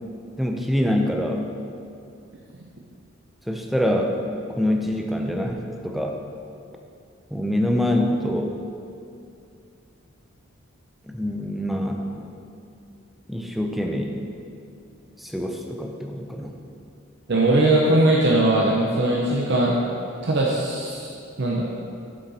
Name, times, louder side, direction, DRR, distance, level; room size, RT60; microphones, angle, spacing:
voice 1, 0.4-1.4 3.5-4.2 4.6-6.2 7.3-8.5 11.0-12.3 13.3-14.2 15.2-16.6, left 1 dB, ahead, 2 dB, 0.5 m, -25 dB
voice 2, 17.3-19.8 20.2-21.6, right 2 dB, 55° right, -2 dB, 0.7 m, -20 dB
7.5 x 6.8 x 4.1 m, 2.5 s
head